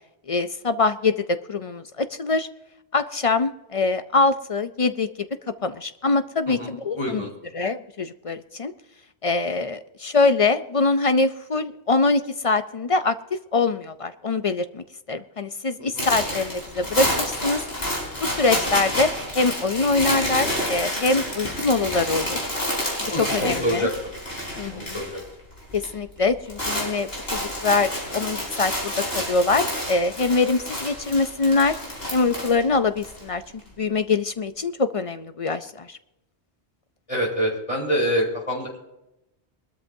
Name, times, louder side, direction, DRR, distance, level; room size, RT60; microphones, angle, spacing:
voice 1, 0.3-2.5 2.9-5.3 5.6-7.2 7.5-8.7 9.2-13.1 13.5-17.6 18.2-19.1 19.3-22.4 23.3-23.9 24.6-25.0 25.7-31.8 32.1-33.4 33.8-36.0, left 3 dB, 45° left, 11 dB, 0.4 m, -23 dB
voice 2, 6.5-7.3 15.8-16.0 23.1-23.9 24.7-25.2 37.1-38.8, equal, 30° left, -2 dB, 4.2 m, -26 dB
sound 1, 16.0-25.3 25.5-25.9 26.2-33.2, left 1 dB, 60° left, 4.8 m, -29 dB
22.5 x 13.0 x 2.7 m, 0.91 s
omnidirectional pair, 1.1 m